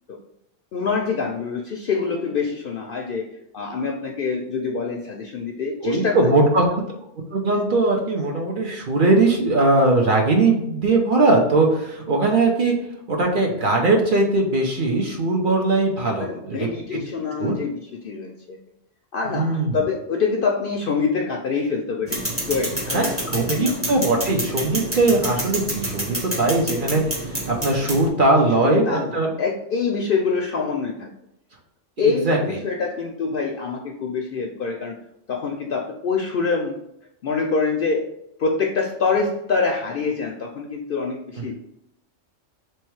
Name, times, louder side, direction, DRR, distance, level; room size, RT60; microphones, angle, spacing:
voice 1, 0.7-3.2 3.5-6.3 16.2-18.6 19.1-22.2 22.5-23.7 28.6-31.1 32.0-35.0 35.3-36.8 37.2-38.1 38.4-41.5, left 4 dB, 60° left, 2 dB, 0.6 m, -25 dB
voice 2, 5.8-6.6 7.3-12.7 13.1-17.0 17.4-17.6 19.2-19.8 22.9-23.1 23.3-29.3 32.0-32.6, right 2 dB, 50° right, 0 dB, 0.8 m, -20 dB
sound 1, 22.1-28.1, right 1 dB, 10° right, 0.9 m, -29 dB
3.3 x 3.1 x 4.6 m, 0.78 s
omnidirectional pair, 1.3 m